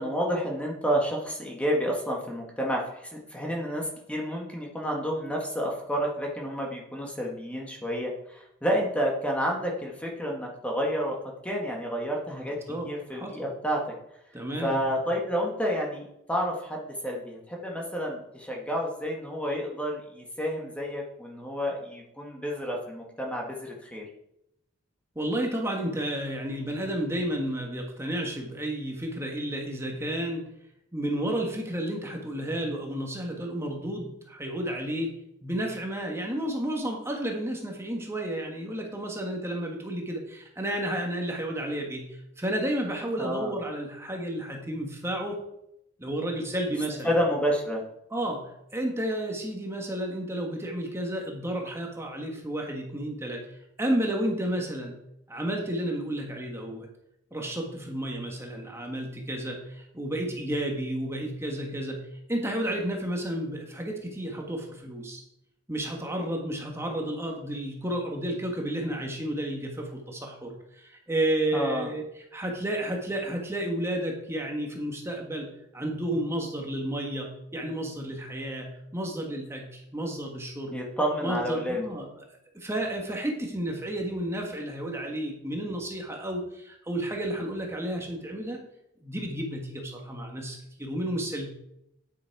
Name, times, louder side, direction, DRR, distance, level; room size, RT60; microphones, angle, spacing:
voice 1, 0.0-11.2 11.4-12.6 12.9-13.8 14.6-24.0 43.2-43.6 47.0-47.8 71.5-71.9 80.7-81.8, equal, 5° left, -1 dB, 1.5 m, -30 dB
voice 2, 12.3-13.5 14.3-14.9 25.1-30.4 30.9-35.1 35.4-42.1 42.4-45.4 46.0-47.1 48.1-53.4 53.8-55.0 55.3-56.9 57.3-62.0 62.3-65.2 65.7-72.0 72.3-80.8 81.2-82.1 82.5-88.6 89.0-91.5, right 1 dB, 15° right, 1 dB, 1.5 m, -32 dB
9.5 x 8.3 x 4.7 m, 0.82 s
head